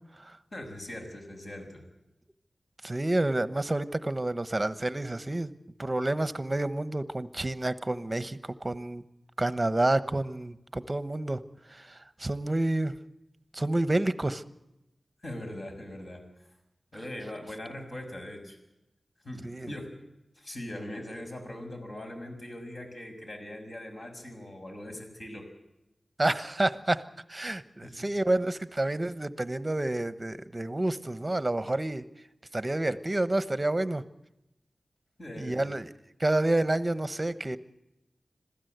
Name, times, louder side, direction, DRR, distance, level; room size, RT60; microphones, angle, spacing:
voice 1, 0.5-1.8 15.2-16.2 16.9-18.6 19.2-19.9 20.4-25.4 27.8-27.9 35.2-35.7, left 1 dB, 50° left, 3 dB, 6.4 m, -41 dB
voice 2, 2.8-5.5 5.8-9.0 9.4-11.4 11.7-12.9 13.5-14.4 19.4-19.7 26.2-32.0 32.5-34.0 35.4-35.9 36.2-37.6, right 2 dB, 25° right, 13 dB, 1.0 m, -29 dB
26.0 x 16.0 x 8.0 m, 0.90 s
wide cardioid pair, 90°, 0 cm